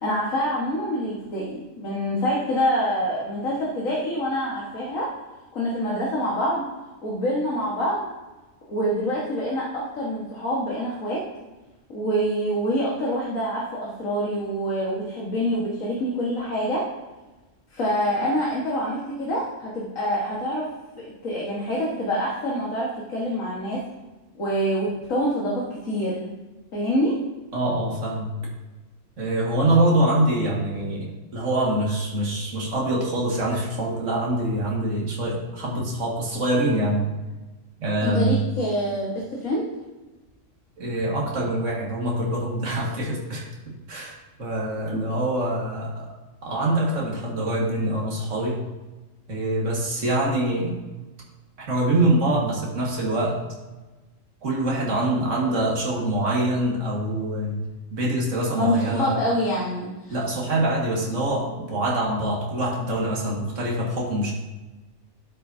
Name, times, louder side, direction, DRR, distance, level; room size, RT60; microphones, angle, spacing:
voice 1, 0.0-5.1 5.5-6.7 7.0-8.1 8.7-11.2 11.9-16.8 17.7-20.7 21.0-23.8 24.4-26.3 26.7-27.2 38.0-39.7 44.9-45.0 58.6-60.2, equal, 85° left, -5 dB, 2.0 m, -26 dB
voice 2, 27.5-28.4 29.2-37.1 37.8-38.5 40.8-46.1 46.4-48.6 49.3-50.8 51.6-53.4 54.4-57.6 57.9-59.2 60.1-64.3, right 1 dB, 70° right, -3 dB, 2.2 m, -24 dB
12.5 x 8.7 x 2.7 m, 1.2 s
omnidirectional pair, 1.4 m